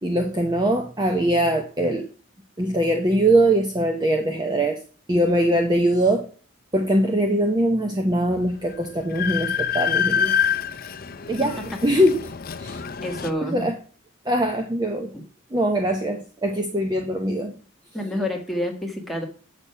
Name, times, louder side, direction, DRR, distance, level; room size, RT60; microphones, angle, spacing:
voice 1, 0.0-2.1 2.6-4.8 5.1-6.3 6.7-10.3 11.3-12.2 12.6-12.8 13.4-13.8 14.3-15.1 15.5-17.6, right 1 dB, 20° right, 4 dB, 0.8 m, -22 dB
Train, 8.3-8.4 8.7-13.3, left 8 dB, 45° left, 0.5 m, -26 dB
voice 2, 13.0-13.7 17.9-19.2, left 1 dB, ahead, 0 dB, 1.7 m, -28 dB
8.5 x 6.3 x 5.6 m, 0.40 s
head